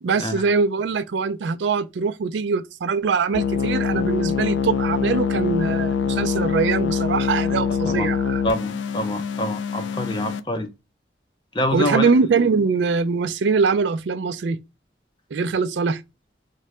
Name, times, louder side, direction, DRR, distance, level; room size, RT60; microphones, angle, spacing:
voice 1, 0.0-8.4 11.7-14.6 15.3-16.0, right 5 dB, 80° right, 0.4 m, -22 dB
sound 1, 3.3-10.4, left 6 dB, 85° left, 0.4 m, -24 dB
voice 2, 8.4-10.7 11.5-12.1, left 1 dB, 25° left, 0.6 m, -26 dB
3.8 x 2.2 x 3.1 m
head